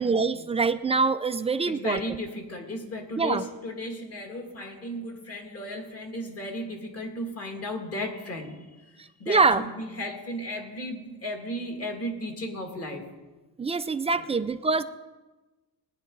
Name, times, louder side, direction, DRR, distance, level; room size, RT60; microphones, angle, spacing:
voice 1, 0.0-2.0 3.2-3.4 9.3-9.6 13.6-14.8, right 4 dB, 15° right, 11 dB, 0.3 m, -24 dB
voice 2, 1.7-8.6 8.9-13.0 14.1-14.2, left 1 dB, 40° left, 2 dB, 2.3 m, -35 dB
20.5 x 10.0 x 3.9 m, 1.2 s
cardioid pair, 155°, 39 cm